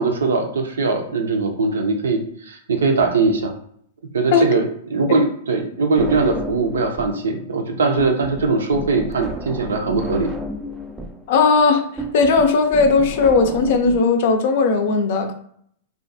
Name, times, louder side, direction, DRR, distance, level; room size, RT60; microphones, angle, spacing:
voice 1, 0.0-3.5 4.1-10.3, right 3 dB, 80° right, 4 dB, 0.5 m, -21 dB
sound 1, 6.0-7.2 7.5-14.0, equal, 10° right, 0.4 m, -32 dB
voice 2, 11.3-11.8 12.1-15.3, left 4 dB, 60° left, 6 dB, 0.4 m, -17 dB
2.4 x 2.3 x 2.6 m, 0.64 s
hypercardioid pair, 115°, 0 cm